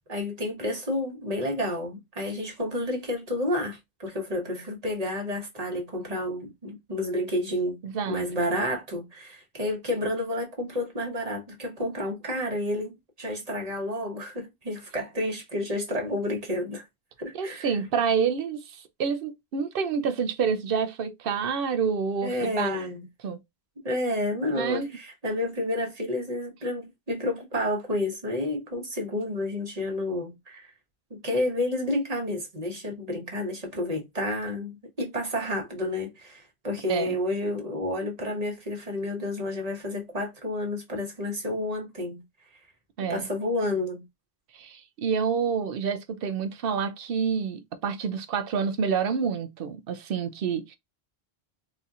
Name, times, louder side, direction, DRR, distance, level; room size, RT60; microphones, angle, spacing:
voice 1, 0.1-7.8 8.1-16.8 17.2-17.8 22.2-23.0 23.8-30.7 31.1-42.2 43.1-44.0, left 1 dB, 40° right, 1.1 m, -30 dB
voice 2, 7.8-8.2 17.4-22.8 23.2-23.4 24.5-24.9 36.9-37.1 43.0-43.3 44.5-50.8, right 6 dB, 65° right, 0.7 m, -28 dB
4.2 x 2.8 x 2.3 m
omnidirectional pair, 1.1 m